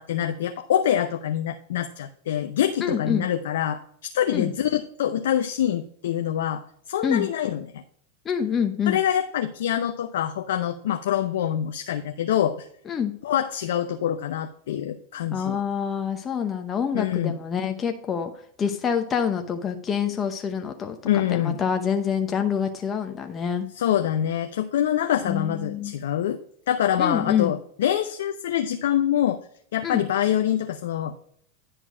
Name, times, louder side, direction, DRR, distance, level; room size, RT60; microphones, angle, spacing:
voice 1, 0.0-6.6 6.9-7.8 8.9-12.6 13.2-15.6 16.9-17.3 21.0-21.6 23.8-26.4 26.7-29.4 29.7-31.2, left 10 dB, 75° left, 6 dB, 0.6 m, -25 dB
voice 2, 2.8-3.3 4.3-4.5 7.0-7.3 8.2-9.0 12.9-13.1 15.3-18.3 18.6-23.7 25.2-25.9 27.0-27.5 29.8-30.0, left 7 dB, 25° left, 5 dB, 0.8 m, -26 dB
10.0 x 4.5 x 4.9 m, 0.65 s
hypercardioid pair, 105°, 0 cm